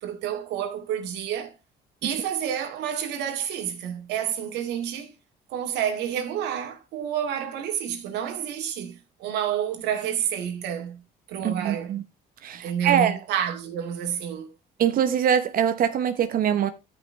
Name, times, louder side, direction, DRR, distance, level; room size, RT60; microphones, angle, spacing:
voice 1, 0.0-1.5 2.0-5.1 5.5-11.0 11.3-12.0 12.6-14.5, right 9 dB, 85° right, 2.2 m, -29 dB
voice 2, 11.4-12.0 12.4-13.1 14.8-16.7, right 9 dB, 60° right, 1.0 m, -23 dB
13.0 x 5.5 x 3.3 m
cardioid pair, 110°, 17 cm